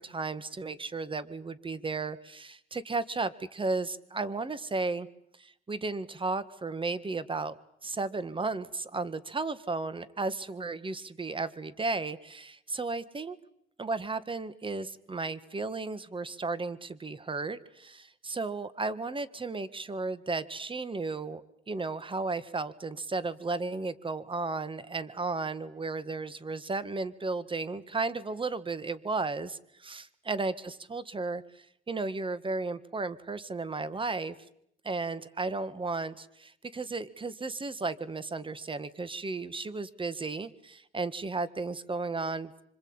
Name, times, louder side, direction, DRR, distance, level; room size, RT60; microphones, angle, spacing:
voice 1, 0.0-5.1 5.4-7.6 7.8-13.4 13.8-34.4 34.8-42.6, right 3 dB, 25° right, 15 dB, 1.8 m, -34 dB
26.5 x 25.5 x 8.9 m, 0.75 s
cardioid pair, 90°, 20 cm